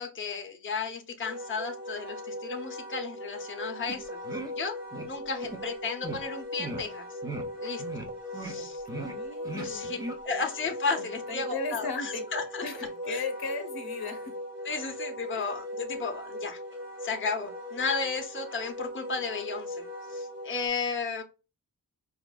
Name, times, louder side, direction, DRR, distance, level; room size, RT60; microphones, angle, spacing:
voice 1, 0.0-4.2 4.5-4.8 5.0-7.1 7.6-8.1 8.3-8.8 9.5-10.0 10.2-12.6 13.0-13.2 14.6-16.6 17.0-21.2, left 4 dB, 30° left, 2 dB, 0.7 m, -34 dB
Wind instrument woodwind instrument, 1.2-20.7, left 1 dB, 30° right, 1.3 m, -39 dB
sound 1, 3.9-4.0 4.2-4.5 4.9-5.1 5.4-5.6 6.0-6.2 6.6-6.8 7.2-7.4 7.8-8.1 8.3-8.5 8.9-9.1 9.4-9.7 10.0-10.1, right 2 dB, 10° right, 0.6 m, -37 dB
voice 2, 8.5-10.1 11.3-12.2 12.6-14.3 15.3-15.5, left 4 dB, 65° left, 6 dB, 0.9 m, -37 dB
4.9 x 2.5 x 2.2 m, 0.30 s
wide cardioid pair, 130°, 39 cm